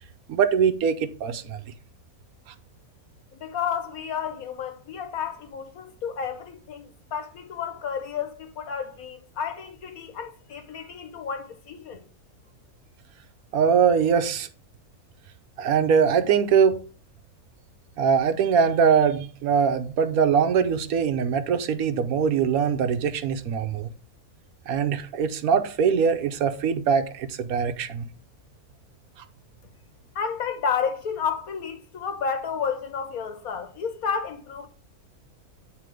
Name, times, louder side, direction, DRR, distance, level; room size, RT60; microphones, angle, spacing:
voice 1, 0.3-1.6 13.5-14.5 15.6-16.8 18.0-23.9 24.7-28.1, right 6 dB, 75° right, 1.1 m, -22 dB
voice 2, 3.3-12.0 30.1-34.7, left 6 dB, 75° left, 1.5 m, -31 dB
9.2 x 3.4 x 4.8 m
omnidirectional pair, 1.6 m